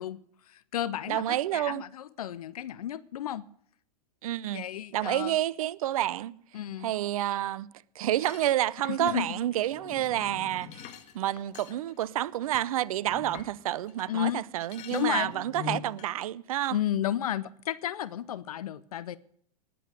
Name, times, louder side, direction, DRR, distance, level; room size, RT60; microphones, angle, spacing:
voice 1, 0.0-3.4 4.5-5.4 6.5-6.9 8.9-9.4 14.1-14.4 14.9-15.3 16.7-19.2, left 11 dB, 70° left, 0.7 m, -33 dB
voice 2, 1.1-1.8 4.2-4.7 4.9-6.4 6.8-7.7 8.0-10.9 11.1-16.8, right 13 dB, 65° right, 0.6 m, -29 dB
sound 1, 8.1-14.1 14.4-16.1, left 8 dB, 35° left, 1.7 m, -44 dB
19.5 x 7.8 x 6.5 m
hypercardioid pair, 100°, 20 cm